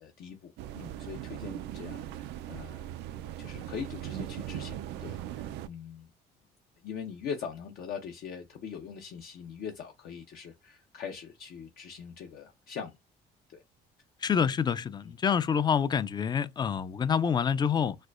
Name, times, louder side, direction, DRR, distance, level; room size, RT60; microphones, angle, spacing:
voice 1, 0.0-2.8 3.4-6.1 6.8-13.0 13.5-13.6 15.0-15.1, left 7 dB, 65° left, 0.6 m, -42 dB
sound 1, 0.6-5.7, right 12 dB, 85° right, 0.4 m, -39 dB
voice 2, 14.2-18.0, left 7 dB, 25° left, 0.3 m, -27 dB
4.2 x 2.3 x 2.4 m
cardioid pair, 110°, 17 cm